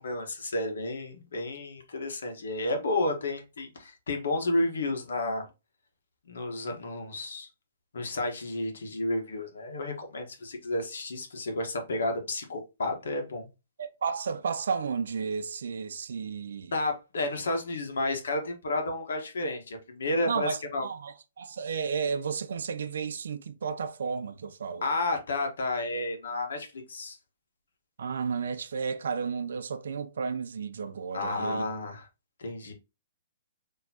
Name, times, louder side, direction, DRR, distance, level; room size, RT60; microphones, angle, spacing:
voice 1, 0.0-5.5 6.3-7.5 7.9-13.5 16.7-20.9 24.8-27.2 31.1-32.1 32.4-32.7, left 2 dB, 85° left, 1.3 m, -31 dB
voice 2, 13.8-16.7 20.3-24.8 28.0-31.7, right 6 dB, 75° right, 0.5 m, -33 dB
4.3 x 3.0 x 2.8 m
hypercardioid pair, 165°, 0 cm